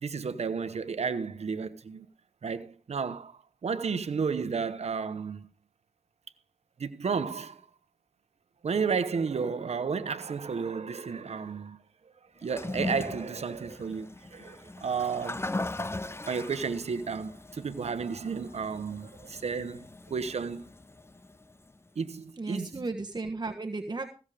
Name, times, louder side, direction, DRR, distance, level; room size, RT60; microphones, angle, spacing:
voice 1, 0.0-2.1 2.4-5.5 6.8-7.6 8.6-11.8 12.4-15.5 16.0-20.7 22.0-22.8, right 5 dB, 90° right, 1.0 m, -32 dB
Toilet flush, 12.4-21.7, left 2 dB, 25° left, 0.6 m, -39 dB
voice 2, 22.4-24.1, right 3 dB, 45° right, 1.3 m, -34 dB
16.0 x 7.3 x 5.0 m
cardioid pair, 50°, 11 cm